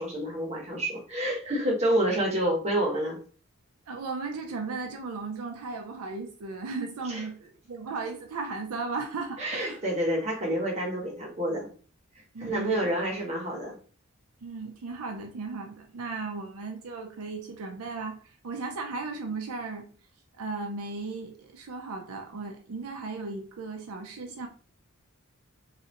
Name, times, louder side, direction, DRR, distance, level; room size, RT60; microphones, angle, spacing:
voice 1, 0.0-3.2 7.1-7.2 9.4-11.7 12.4-13.8, right 1 dB, 30° right, -2 dB, 1.1 m, -28 dB
voice 2, 3.9-9.8 12.3-12.9 14.4-19.9 20.4-24.5, right 4 dB, 75° right, 2 dB, 0.5 m, -36 dB
3.1 x 2.5 x 2.8 m, 0.41 s
head